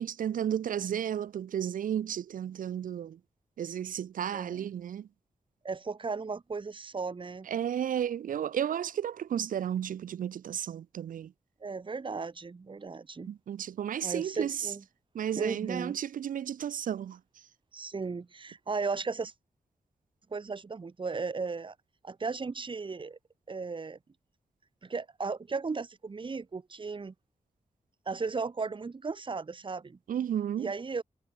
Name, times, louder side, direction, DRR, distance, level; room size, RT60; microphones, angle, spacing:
voice 1, 0.0-3.2 3.6-5.1 7.5-11.3 13.3-14.7 15.1-17.2 30.1-30.7, right 9 dB, 75° right, 0.4 m, -33 dB
voice 2, 4.3-4.7 5.6-7.5 11.6-13.3 14.0-14.8 15.3-16.0 17.7-19.3 20.3-21.8 22.0-23.2 23.5-24.0 24.8-27.1 28.1-30.0 30.6-31.0, right 4 dB, 35° right, 1.6 m, -36 dB
wide cardioid pair, 155°, 14 cm